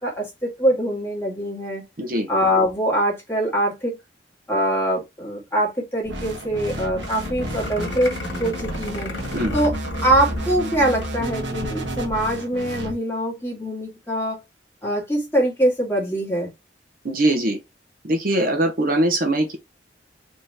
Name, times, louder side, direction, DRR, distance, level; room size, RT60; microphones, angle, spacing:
voice 1, 0.0-1.8 2.3-4.0 4.5-9.1 9.5-9.8 10.0-14.4 14.8-16.5, right 1 dB, 15° left, 2.0 m, -23 dB
voice 2, 2.0-2.3 9.3-9.5 17.0-17.6 18.0-19.6, right 1 dB, 50° right, 0.9 m, -21 dB
sound 1, 6.1-12.9, right 1 dB, 80° right, 1.3 m, -31 dB
sound 2, 7.0-11.1 11.4-11.5 11.8-12.1, left 2 dB, 80° left, 1.7 m, -34 dB
4.4 x 3.0 x 3.3 m
head